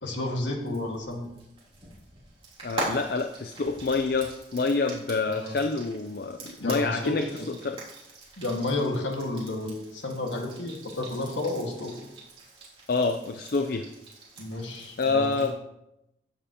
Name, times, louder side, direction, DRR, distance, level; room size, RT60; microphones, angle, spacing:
voice 1, 0.0-1.3 5.3-5.6 6.6-7.2 8.4-12.0 14.4-15.5, left 2 dB, 85° left, 1 dB, 1.8 m, -31 dB
Frying (food), 0.6-15.5, right 2 dB, 30° right, 3.3 m, -43 dB
voice 2, 2.6-7.8 12.9-13.9 15.0-15.5, left 3 dB, 55° left, 6 dB, 0.5 m, -27 dB
15.0 x 7.4 x 3.0 m, 0.88 s
head